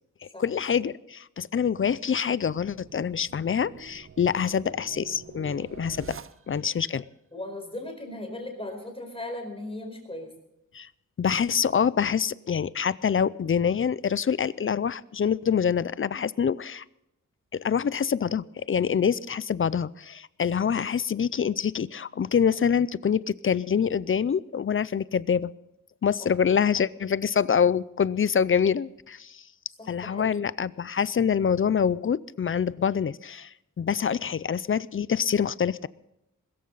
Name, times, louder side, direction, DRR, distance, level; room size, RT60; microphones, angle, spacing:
voice 1, 0.2-6.2 6.5-7.0 10.7-10.9 11.2-16.8 17.5-25.5 26.0-29.4 29.9-35.9, left 7 dB, 40° left, 19 dB, 0.4 m, -26 dB
sound 1, 2.3-6.8, right 6 dB, 40° right, 0.7 m, -47 dB
voice 2, 7.3-10.3 26.2-26.3 29.8-30.4, left 1 dB, 15° left, 3 dB, 4.5 m, -37 dB
22.0 x 14.0 x 4.0 m, 0.83 s
wide cardioid pair, 160°, 33 cm